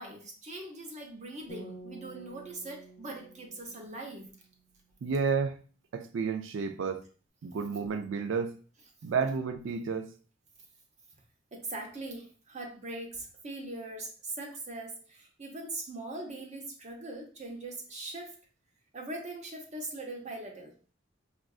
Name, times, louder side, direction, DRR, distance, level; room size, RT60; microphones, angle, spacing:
voice 1, 0.0-4.3 11.5-18.3 18.9-20.7, right 2 dB, 40° right, 0.8 m, -41 dB
sound 1, 1.5-4.7, right 2 dB, 45° left, 0.6 m, -50 dB
voice 2, 5.0-5.6 5.9-7.0 7.4-8.5 9.0-10.1, right 5 dB, 80° right, 0.4 m, -31 dB
4.7 x 2.4 x 2.3 m
head